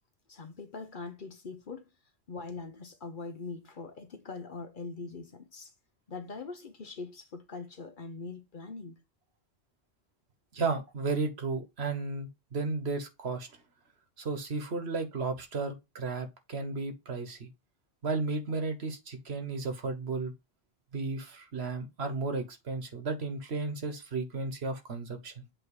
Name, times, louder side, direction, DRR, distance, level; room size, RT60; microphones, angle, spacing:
voice 1, 0.3-1.9 2.3-5.7 6.1-9.0, left 4 dB, 55° left, 0.9 m, -42 dB
voice 2, 10.5-13.5 14.2-17.5 18.0-20.3 20.9-25.4, right 3 dB, 80° right, 1.5 m, -34 dB
8.0 x 3.0 x 4.8 m
omnidirectional pair, 1.1 m